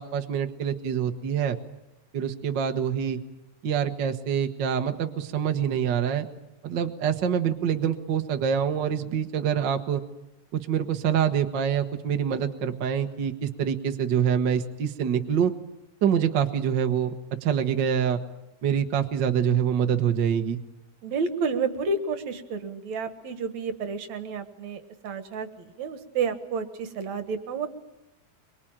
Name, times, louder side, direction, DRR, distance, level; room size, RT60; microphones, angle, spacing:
voice 1, 0.0-1.6 2.1-3.2 3.6-6.3 6.6-10.0 10.5-15.5 16.0-17.1 17.4-18.2 18.6-20.6, right 8 dB, 50° right, 6 dB, 1.6 m, -25 dB
voice 2, 21.0-25.5 25.8-27.7, right 4 dB, 70° right, 9 dB, 2.8 m, -30 dB
24.0 x 24.0 x 8.9 m, 0.89 s
omnidirectional pair, 3.4 m